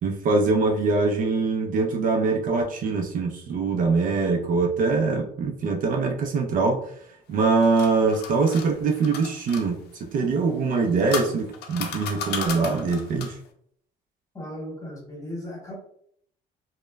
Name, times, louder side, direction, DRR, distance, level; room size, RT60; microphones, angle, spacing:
voice 1, 0.0-6.8 7.3-13.4, right 4 dB, 55° right, 2 dB, 0.5 m, -23 dB
sound 1, 7.3-9.7 10.6-13.5, left 6 dB, 75° left, 0.5 m, -34 dB
voice 2, 14.3-15.7, left 1 dB, 20° left, -3 dB, 1.3 m, -36 dB
3.0 x 2.1 x 2.2 m, 0.64 s
cardioid pair, 110°, 17 cm